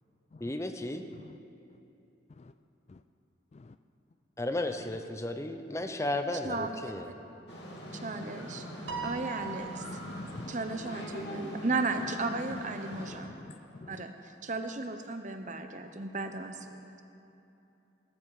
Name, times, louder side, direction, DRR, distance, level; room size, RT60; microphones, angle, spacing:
voice 1, 0.4-1.0 4.4-7.1, left 1 dB, 15° left, 7 dB, 0.7 m, -34 dB
voice 2, 6.4-7.1 8.0-9.8 10.5-13.3 13.9-16.7, right 3 dB, 40° right, 7 dB, 0.9 m, -35 dB
sound 1, 7.5-13.2, equal, 65° left, 2.9 m, -42 dB
Piano, 8.9-10.4, right 6 dB, 80° right, 1.3 m, -40 dB
voice 3, 9.8-10.5 12.9-14.0, left 3 dB, 35° left, 11 dB, 0.3 m, -48 dB
18.5 x 13.5 x 4.9 m, 3.0 s
head